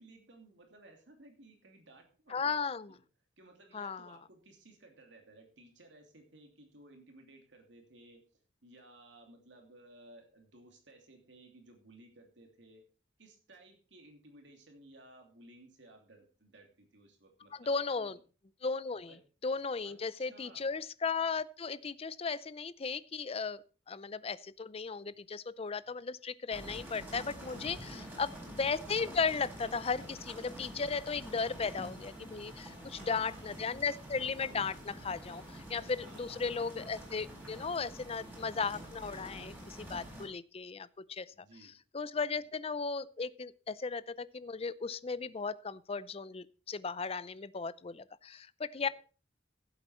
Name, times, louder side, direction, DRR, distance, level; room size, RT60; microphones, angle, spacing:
voice 1, 0.0-3.0 3.4-8.2 8.6-12.8 13.2-18.1 19.1-19.2 19.8-20.8 27.9-28.4 32.7-33.9 36.0-36.6 41.3-41.8 42.3-42.5, right 2 dB, 70° right, 3 dB, 2.8 m, -58 dB
voice 2, 2.3-2.9 3.7-4.2 17.5-18.2 18.6-19.1 19.4-28.3 28.6-41.3 41.9-48.9, left 5 dB, 30° left, 17 dB, 0.5 m, -36 dB
sound 1, 26.5-40.3, equal, 10° right, 5.1 m, -47 dB
15.5 x 8.0 x 4.3 m, 0.37 s
head